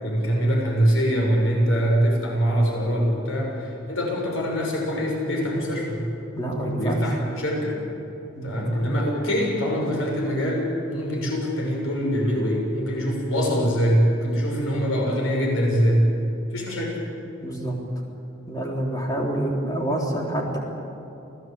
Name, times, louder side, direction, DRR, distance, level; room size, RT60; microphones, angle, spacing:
voice 1, 0.0-6.0 6.6-7.8 8.4-16.0 16.5-17.0, equal, 85° left, -1 dB, 6.5 m, -23 dB
voice 2, 6.3-7.0 8.3-8.8 17.4-17.7 18.5-20.6, right 1 dB, 20° left, -1 dB, 3.8 m, -27 dB
28.5 x 18.0 x 8.4 m, 2.9 s
head